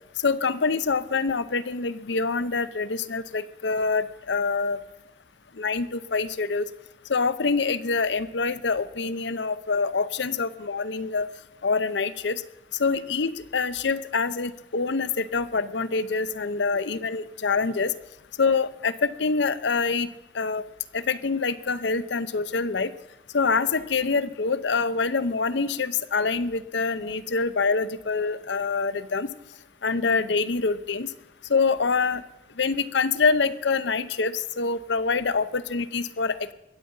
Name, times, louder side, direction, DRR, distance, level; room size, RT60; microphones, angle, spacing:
voice 1, 0.2-4.8 5.6-6.7 7.1-11.3 11.6-12.4 12.8-17.9 18.4-20.6 20.9-22.9 23.3-29.3 29.8-31.1 31.5-32.2 32.6-36.5, left 4 dB, 75° left, 14 dB, 0.7 m, -25 dB
21.5 x 8.4 x 5.5 m, 0.92 s
head